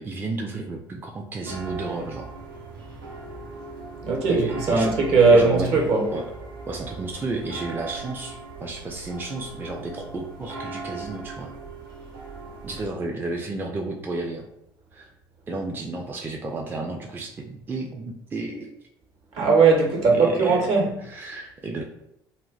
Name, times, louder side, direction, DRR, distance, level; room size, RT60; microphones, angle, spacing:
voice 1, 0.0-2.3 4.3-5.0 5.3-5.7 6.1-6.2 6.7-11.5 12.6-14.5 14.9-15.1 15.5-18.7 20.1-20.7 21.0-21.8, right 2 dB, 15° right, 0.4 m, -32 dB
sound 1, 1.5-12.9, right 3 dB, 75° right, 0.7 m, -39 dB
voice 2, 4.0-6.1 19.3-21.0, right 4 dB, 55° right, 0.9 m, -19 dB
2.4 x 2.1 x 3.8 m
figure-of-eight pair, 60°, 12 cm